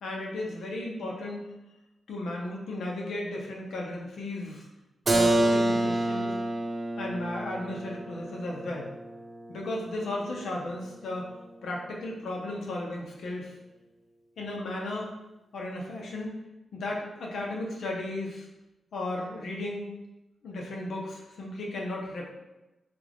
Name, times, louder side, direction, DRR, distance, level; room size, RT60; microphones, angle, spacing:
voice 1, 0.0-1.4 2.1-4.7 5.1-6.3 7.0-8.9 9.5-11.3 11.6-13.5 14.4-15.1 15.5-16.4 16.7-18.5 18.9-19.9 20.4-22.3, left 1 dB, 80° left, -1 dB, 0.8 m, -35 dB
Keyboard (musical), 5.1-10.7, right 1 dB, 40° right, 0.5 m, -29 dB
3.4 x 2.3 x 3.4 m, 1.0 s
cardioid pair, 90°, 0 cm